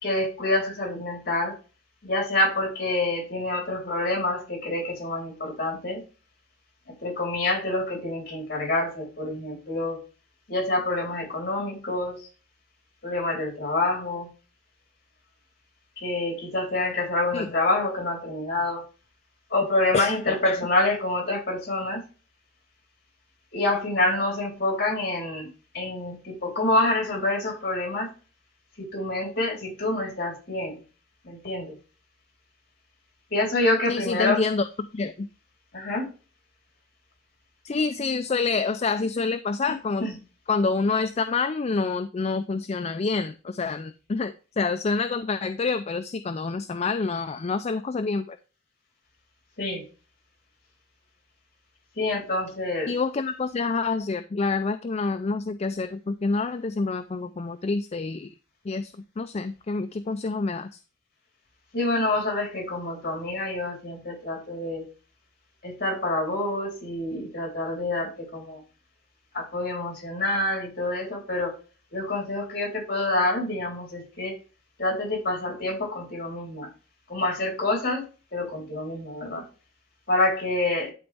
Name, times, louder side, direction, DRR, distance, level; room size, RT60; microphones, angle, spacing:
voice 1, 0.0-1.6 2.0-6.0 6.9-10.0 10.5-12.3 13.0-14.3 16.0-18.8 19.5-22.0 23.5-25.5 25.7-28.1 28.8-30.8 31.2-31.7 33.3-34.4 35.7-36.1 40.0-40.2 49.6-49.8 52.0-52.9 61.7-64.9 65.6-68.6 69.3-71.6 71.9-74.4 74.8-76.7 77.1-78.0 78.3-79.5 80.1-80.9, left 2 dB, 55° left, -1 dB, 3.8 m, -27 dB
voice 2, 33.9-35.3 37.6-40.1 40.5-48.4 52.9-58.3 58.7-60.8, left 4 dB, 35° left, 9 dB, 0.4 m, -27 dB
12.0 x 4.0 x 3.4 m, 0.35 s
head